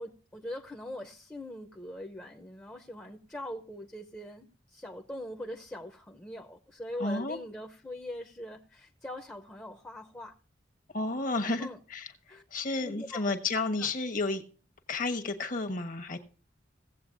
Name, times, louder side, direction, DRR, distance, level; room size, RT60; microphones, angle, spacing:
voice 1, 0.0-10.3 11.6-11.8 12.3-12.4 12.8-13.3 13.8-13.9, left 1 dB, 10° left, 0.7 m, -42 dB
voice 2, 7.0-7.4 10.9-12.1 12.5-14.4 14.9-16.2, left 3 dB, 50° left, 1.1 m, -31 dB
17.0 x 7.9 x 2.6 m
head